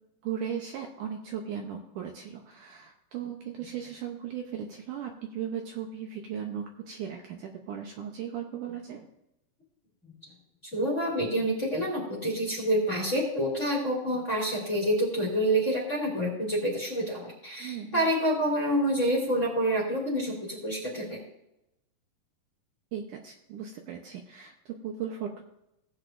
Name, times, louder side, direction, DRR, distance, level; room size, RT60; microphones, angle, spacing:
voice 1, 0.2-9.1 17.6-18.0 22.9-25.4, right 8 dB, 75° right, 2 dB, 2.0 m, -37 dB
voice 2, 10.7-21.2, equal, 20° left, -3 dB, 2.3 m, -27 dB
17.0 x 8.9 x 2.5 m, 0.86 s
omnidirectional pair, 4.5 m